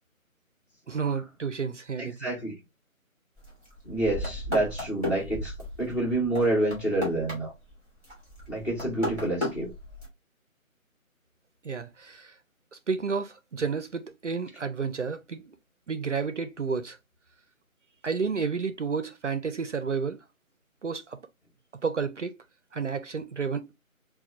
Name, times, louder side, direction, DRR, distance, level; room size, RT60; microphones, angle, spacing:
voice 1, 0.9-2.3 11.6-12.3 12.7-15.4 15.9-17.0 18.0-20.2 20.8-21.2 21.8-22.4 22.7-23.7, right 5 dB, 60° right, 0.5 m, -31 dB
voice 2, 2.0-2.5 3.8-5.5 5.8-7.5 8.5-9.7, right 2 dB, 20° left, 1.8 m, -28 dB
sound 1, 3.4-7.7 8.0-10.1, left 1 dB, 5° left, 2.6 m, -35 dB
5.7 x 2.3 x 2.4 m
figure-of-eight pair, 165°, 42 cm